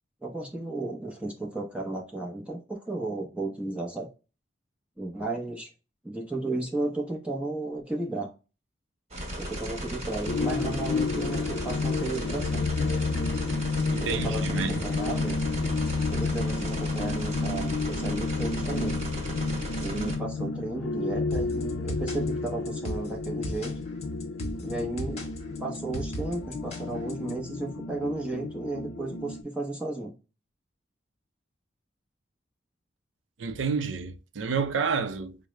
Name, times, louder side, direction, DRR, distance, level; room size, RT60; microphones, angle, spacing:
voice 1, 0.2-4.1 5.0-5.7 6.0-8.3 9.4-12.7 14.0-15.4 16.1-19.0 19.8-23.7 24.6-25.3 25.6-30.2, right 2 dB, 5° right, 0.6 m, -34 dB
sound 1, 9.1-20.2, equal, 35° right, 1.2 m, -35 dB
sound 2, 10.3-29.4, left 3 dB, 85° left, 0.4 m, -31 dB
voice 2, 13.9-14.7 15.8-15.9 33.4-35.4, right 5 dB, 90° right, 0.5 m, -29 dB
sound 3, 21.3-27.3, equal, 35° left, 0.9 m, -37 dB
4.8 x 2.0 x 3.1 m
head